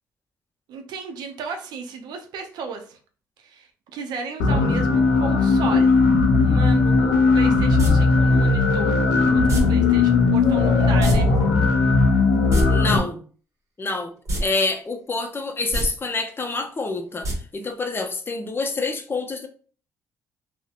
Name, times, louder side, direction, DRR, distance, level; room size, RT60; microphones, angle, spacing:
voice 1, 0.7-3.0 3.4-6.0 6.3-11.3, right 5 dB, 80° right, 5 dB, 0.5 m, -34 dB
sound 1, 4.4-13.0, left 3 dB, 90° left, 0.5 m, -18 dB
sound 2, 7.8-7.9 9.5-9.6 11.0-11.2 11.4-11.5 12.4-12.6 14.3-14.4 14.8-14.9 15.6-15.9 17.2-17.3 17.7-17.8, right 1 dB, 45° right, 0.9 m, -24 dB
voice 2, 12.7-13.2 13.8-14.1 14.4-19.5, left 3 dB, 30° left, 5 dB, 0.5 m, -27 dB
2.7 x 2.0 x 2.3 m, 0.42 s
supercardioid pair, 60°, 7 cm